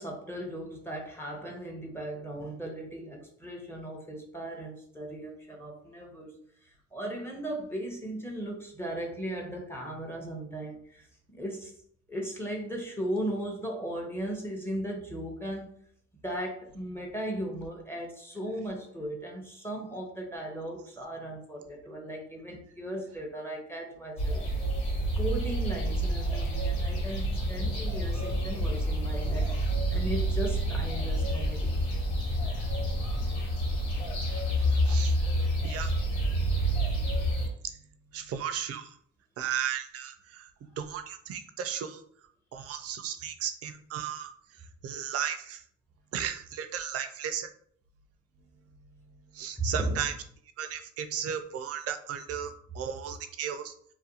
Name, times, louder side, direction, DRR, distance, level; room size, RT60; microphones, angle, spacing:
voice 1, 0.0-6.3 6.9-11.1 11.3-11.7 12.1-15.7 16.2-24.4 25.2-31.7 37.2-37.3 49.6-50.0, right 1 dB, 10° left, 0 dB, 0.7 m, -37 dB
sound 1, 24.2-37.5, right 1 dB, 75° left, 1.1 m, -28 dB
voice 2, 38.1-38.9 39.4-40.5 40.8-42.0 42.5-44.3 44.8-45.6 46.1-47.5 49.3-50.1 50.6-53.7, right 9 dB, 55° right, 8 dB, 0.4 m, -35 dB
2.4 x 2.2 x 2.7 m, 0.63 s
cardioid pair, 80°, 29 cm